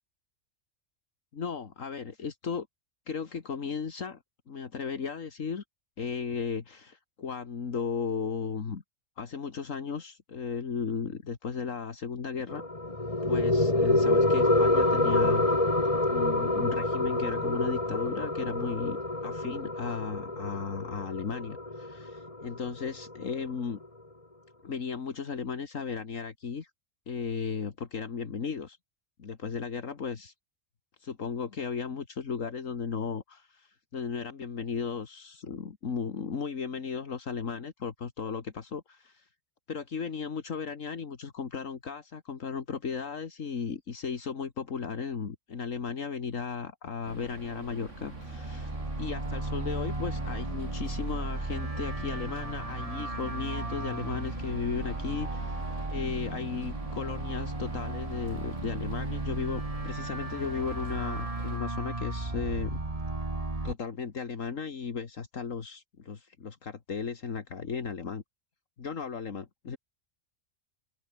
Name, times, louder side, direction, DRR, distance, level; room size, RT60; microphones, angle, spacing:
voice 1, 1.3-2.7 3.1-4.2 4.5-5.6 6.0-8.8 9.2-12.6 13.2-15.6 16.1-19.0 19.2-23.8 24.6-26.7 27.1-28.8 29.2-30.3 31.0-39.3 39.7-62.8 63.6-68.2 68.8-69.8, left 6 dB, 70° left, 2.1 m, -35 dB
sound 1, 12.5-23.5, left 2 dB, 25° left, 2.9 m, -27 dB
sound 2, 47.0-61.6, right 2 dB, 65° right, 5.3 m, -46 dB
sound 3, 47.9-63.7, right 2 dB, 25° right, 2.4 m, -35 dB
omnidirectional pair, 1.4 m